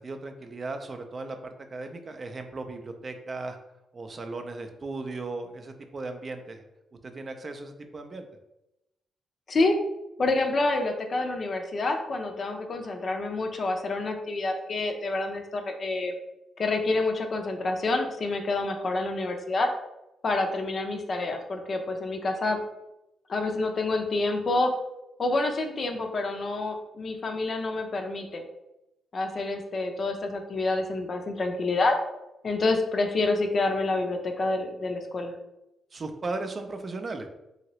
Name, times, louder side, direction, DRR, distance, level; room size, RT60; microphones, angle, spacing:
voice 1, 0.0-3.6 3.9-6.6 7.0-8.3 35.9-37.3, right 3 dB, 40° right, 6 dB, 0.4 m, -36 dB
voice 2, 9.5-9.8 10.2-16.1 16.6-19.7 20.2-22.6 23.3-24.7 25.2-28.4 29.1-32.0 32.4-35.3, left 2 dB, 50° left, 4 dB, 0.5 m, -28 dB
2.8 x 2.8 x 3.0 m, 0.90 s
cardioid pair, 70°, 0 cm